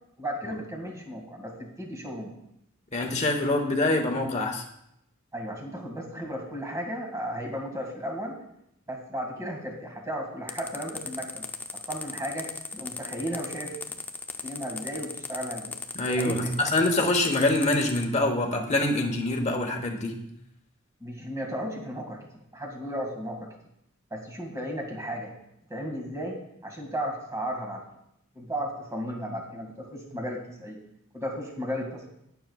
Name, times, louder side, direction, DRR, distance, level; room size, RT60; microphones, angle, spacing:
voice 1, 0.2-2.3 5.3-8.4 8.9-11.5 11.9-14.0 14.4-15.8 16.1-16.7 21.0-22.2 22.5-23.5 24.1-25.3 25.7-27.8 28.3-30.8 31.1-32.1, equal, 15° right, 0 dB, 2.1 m, -34 dB
voice 2, 2.9-4.6 15.9-20.1, left 2 dB, 30° left, 2 dB, 1.2 m, -25 dB
sound 1, 10.5-18.0, left 4 dB, 10° left, 0.5 m, -37 dB
20.0 x 6.8 x 2.4 m, 0.79 s
head